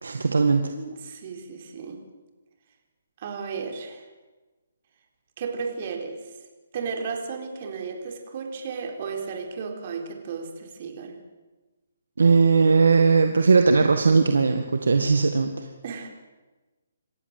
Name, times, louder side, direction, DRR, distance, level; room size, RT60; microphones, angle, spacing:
voice 1, 0.0-0.7 12.2-15.7, right 4 dB, 85° right, 6 dB, 1.9 m, -19 dB
voice 2, 0.7-2.0 3.2-4.1 5.4-6.3 6.7-11.2 15.8-16.1, right 5 dB, 45° right, 3 dB, 4.2 m, -34 dB
27.5 x 14.5 x 7.7 m, 1.2 s
hypercardioid pair, 155°, 0 cm